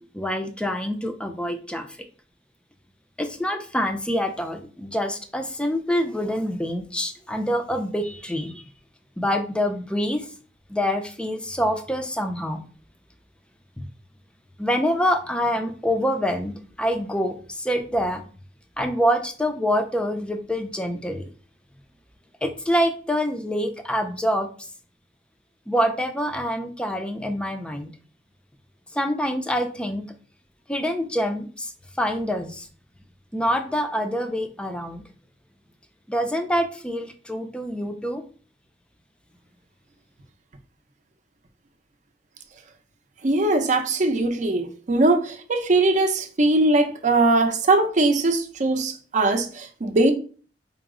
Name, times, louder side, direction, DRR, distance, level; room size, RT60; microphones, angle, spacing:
voice 1, 0.0-2.0 3.2-8.7 9.2-10.3 10.7-12.6 13.8-13.9 14.6-18.2 18.8-21.3 22.4-24.5 25.7-27.9 28.9-30.1 30.7-32.7 33.3-35.0 36.1-38.2, equal, 5° left, 0.4 m, -26 dB
voice 2, 43.2-50.1, right 2 dB, 45° right, 0.5 m, -21 dB
4.6 x 2.0 x 3.6 m
head